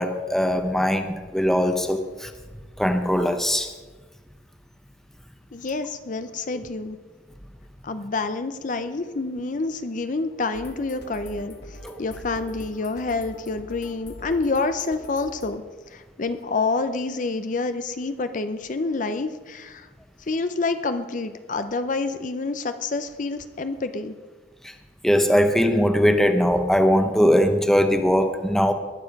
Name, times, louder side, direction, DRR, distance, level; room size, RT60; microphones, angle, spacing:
voice 1, 0.0-2.3 2.8-3.7 11.8-12.0 24.6-24.7 25.0-28.7, equal, ahead, 6 dB, 0.9 m, -20 dB
voice 2, 5.5-7.0 7.8-15.6 15.9-19.9 20.2-24.1, left 3 dB, 45° left, 10 dB, 0.6 m, -28 dB
sound 1, 10.5-15.6, left 1 dB, 60° left, 1.7 m, -43 dB
20.5 x 7.2 x 5.3 m, 1.3 s
head